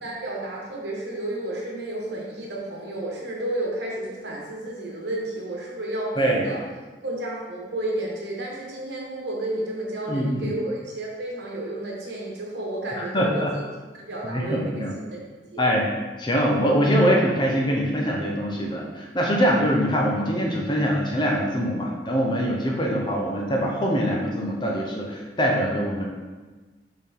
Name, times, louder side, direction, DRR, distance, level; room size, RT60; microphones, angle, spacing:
voice 1, 0.0-6.6 7.0-13.6 13.9-14.8 15.1-15.2 15.5-15.7, right 1 dB, 65° right, -3 dB, 1.4 m, -31 dB
voice 2, 6.2-6.5 10.1-10.5 13.0-13.5 14.2-14.9 15.6-15.9 16.2-26.1, equal, 25° left, -1 dB, 0.8 m, -23 dB
6.8 x 3.9 x 3.6 m, 1.3 s
head